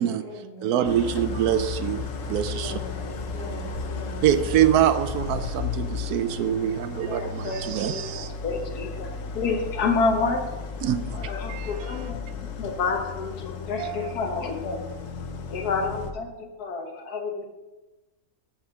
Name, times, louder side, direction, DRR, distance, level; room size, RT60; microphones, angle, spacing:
voice 1, 0.0-1.0 2.5-4.2 10.8-10.9 15.5-16.0, right 1 dB, 25° left, -5 dB, 2.8 m, -42 dB
voice 2, 0.6-2.8 4.2-8.3 10.8-11.2 11.5-12.0 13.8-14.1, right 10 dB, 80° right, 11 dB, 1.1 m, -25 dB
Idling, 0.8-16.1, left 4 dB, 60° left, 1.1 m, -34 dB
voice 3, 7.1-10.5 11.1-14.8 15.5-17.5, left 4 dB, 80° left, 3 dB, 1.7 m, -29 dB
6.5 x 6.0 x 6.9 m, 1.1 s
omnidirectional pair, 1.6 m